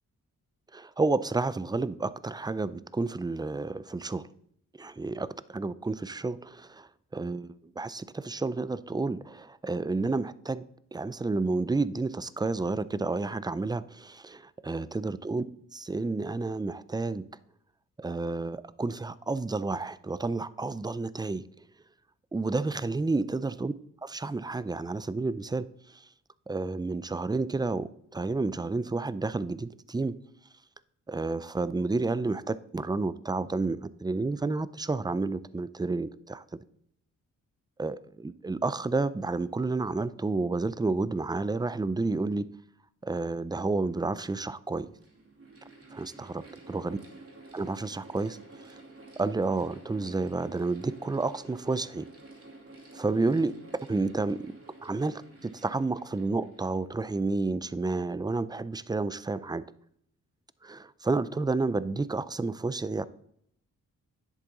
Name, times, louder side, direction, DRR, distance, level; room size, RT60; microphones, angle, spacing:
voice 1, 0.7-4.3 4.8-10.6 10.9-15.4 15.7-17.2 18.0-21.4 22.3-23.7 24.0-25.7 25.9-26.0 26.5-30.1 31.1-36.4 37.8-42.5 43.0-44.9 45.9-46.4 46.7-47.0 47.5-48.4 48.7-48.8 49.2-52.1 52.9-53.5 53.9-59.6 60.6-63.0, right 3 dB, 10° right, 0.5 m, -30 dB
Mechanical fan, 44.6-57.3, right 2 dB, 45° right, 2.5 m, -51 dB
10.5 x 7.4 x 4.0 m
cardioid pair, 60°, 34 cm